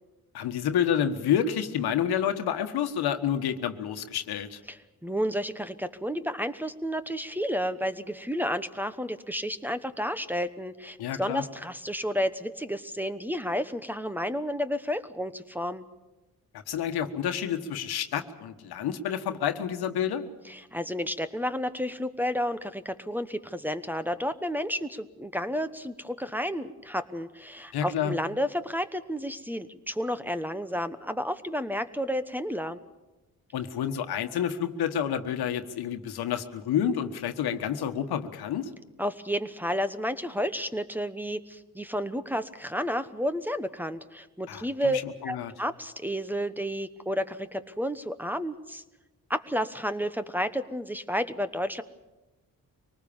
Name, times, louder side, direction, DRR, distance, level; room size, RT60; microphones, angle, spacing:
voice 1, 0.3-4.6 11.0-11.4 16.7-20.2 27.7-28.1 33.5-38.7 44.5-44.9 45.2-45.5, left 9 dB, 90° left, 8 dB, 1.5 m, -29 dB
voice 2, 4.7-15.8 20.5-32.8 39.0-45.0 45.2-48.8 49.3-51.8, equal, 5° right, 11 dB, 1.1 m, -31 dB
24.0 x 19.5 x 7.2 m, 1.1 s
cardioid pair, 85°, 37 cm